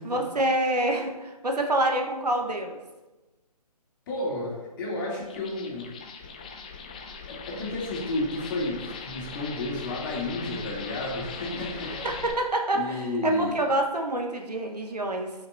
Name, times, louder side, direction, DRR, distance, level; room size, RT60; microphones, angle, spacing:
voice 1, 0.0-2.8 11.5-11.6 12.0-15.3, right 1 dB, 75° right, 2 dB, 1.3 m, -27 dB
voice 2, 4.1-5.9 7.3-12.1 12.7-13.6, left 2 dB, 30° left, -4 dB, 2.6 m, -31 dB
sound 1, 5.2-12.3, left 5 dB, 15° left, 0.4 m, -40 dB
13.0 x 5.9 x 2.7 m, 1.1 s
figure-of-eight pair, 145°, 20 cm